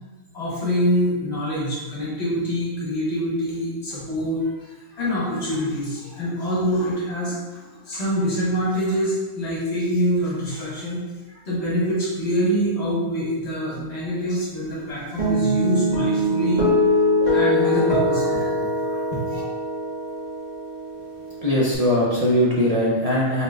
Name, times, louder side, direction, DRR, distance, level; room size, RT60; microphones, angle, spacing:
voice 1, 0.3-11.0 11.3-16.6 17.0-19.4, equal, 55° left, -7 dB, 1.6 m, -25 dB
Guitar, 15.2-21.7, left 1 dB, 30° right, 1.6 m, -22 dB
voice 2, 21.4-23.4, equal, 45° right, -6 dB, 0.5 m, -20 dB
4.0 x 4.0 x 2.4 m, 1.2 s
omnidirectional pair, 1.4 m